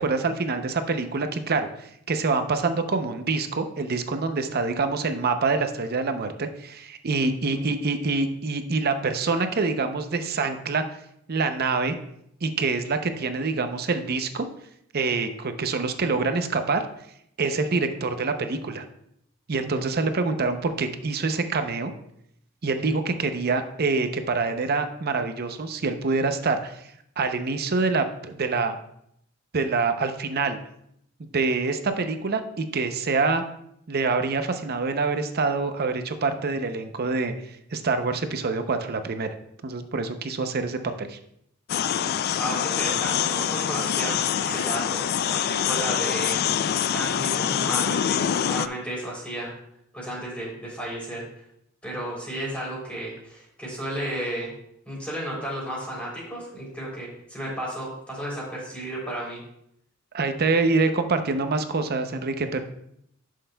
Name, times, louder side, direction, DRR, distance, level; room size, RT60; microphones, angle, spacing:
voice 1, 0.0-10.8 11.3-12.0 12.4-14.5 14.9-16.9 17.4-18.8 19.5-21.9 22.6-26.8 27.2-28.8 29.5-30.6 31.2-33.4 33.9-39.3 39.6-41.2 60.1-62.6, right 4 dB, 50° right, 8 dB, 0.6 m, -26 dB
sound 1, 41.7-48.7, left 9 dB, 50° left, 0.3 m, -25 dB
voice 2, 42.4-46.4 46.9-49.5 49.9-51.2 51.8-54.5 54.8-59.4, right 1 dB, 5° left, -5 dB, 3.3 m, -33 dB
11.0 x 6.4 x 2.3 m, 0.75 s
head